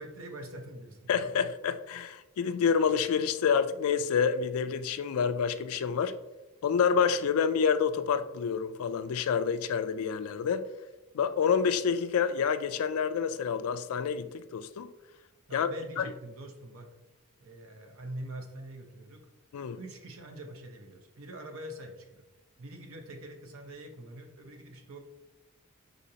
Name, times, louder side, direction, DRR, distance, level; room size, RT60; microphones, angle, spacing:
voice 1, 0.0-1.3 15.5-16.9 17.4-19.2 19.8-22.2 22.6-25.0, right 1 dB, 65° right, 0.7 m, -44 dB
voice 2, 1.1-6.1 6.6-10.6 11.1-14.9 15.5-15.7 16.0-16.1 19.5-19.8, left 6 dB, 75° left, 0.3 m, -28 dB
5.0 x 3.8 x 2.8 m
head